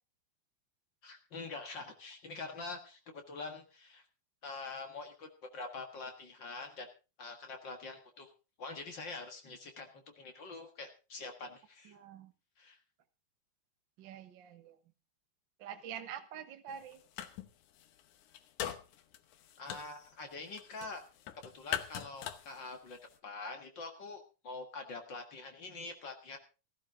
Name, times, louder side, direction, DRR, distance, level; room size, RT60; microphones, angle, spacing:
voice 1, 1.0-4.0 4.4-6.9 7.2-8.3 8.6-12.0 12.6-12.8 19.6-21.0 21.5-26.4, left 3 dB, 50° left, 4 dB, 1.5 m, -45 dB
voice 2, 11.9-12.3 14.0-14.7 15.6-17.0, right 9 dB, 70° right, 7 dB, 1.1 m, -46 dB
sound 1, 16.7-17.5 17.8-23.2, left 11 dB, 70° left, 1.9 m, -42 dB
16.0 x 14.0 x 3.7 m, 0.32 s
omnidirectional pair, 4.4 m